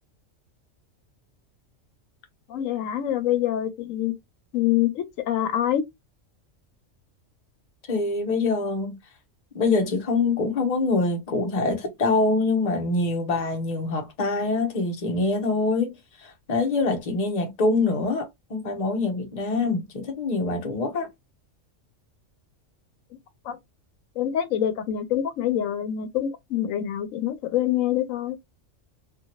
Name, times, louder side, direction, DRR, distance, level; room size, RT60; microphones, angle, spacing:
voice 1, 2.5-4.1 4.5-5.8 23.5-23.6 24.2-28.4, left 11 dB, 85° left, 1.0 m, -25 dB
voice 2, 7.9-9.0 9.5-21.1, left 3 dB, 40° left, 0.7 m, -25 dB
2.7 x 2.5 x 2.8 m
omnidirectional pair, 1.3 m